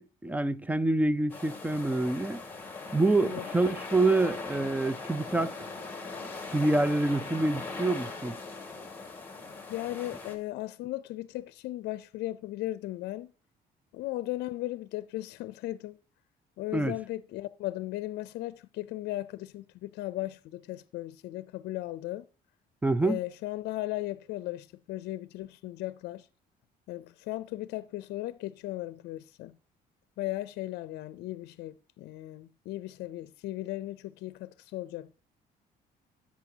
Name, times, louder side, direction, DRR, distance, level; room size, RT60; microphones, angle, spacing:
voice 1, 0.0-2.4 2.9-5.5 6.5-8.4 16.7-16.9 22.8-23.2, right 2 dB, 10° right, 0.5 m, -26 dB
sound 1, 1.3-10.3, left 3 dB, 10° left, 2.8 m, -40 dB
voice 2, 9.7-13.3 13.9-16.0 16.6-22.3 23.0-26.3 26.9-29.6 30.2-35.2, left 16 dB, 80° left, 0.5 m, -36 dB
13.0 x 8.5 x 2.8 m
cardioid pair, 110°, 17 cm